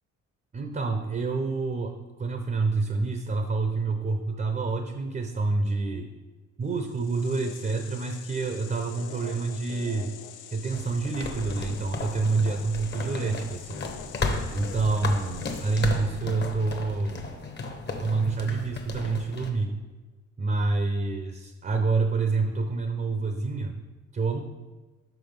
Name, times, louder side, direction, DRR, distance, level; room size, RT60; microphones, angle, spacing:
voice 1, 0.5-6.1 6.6-10.1 10.5-13.8 14.5-17.5 18.0-19.7 20.4-23.8 24.1-24.4, right 3 dB, 30° right, 5 dB, 0.6 m, -28 dB
sound 1, 6.7-16.3, left 9 dB, 85° left, 0.5 m, -45 dB
sound 2, 10.7-19.5, left 3 dB, 35° left, 0.9 m, -34 dB
6.0 x 4.6 x 5.2 m, 1.3 s
cardioid pair, 90°, 30 cm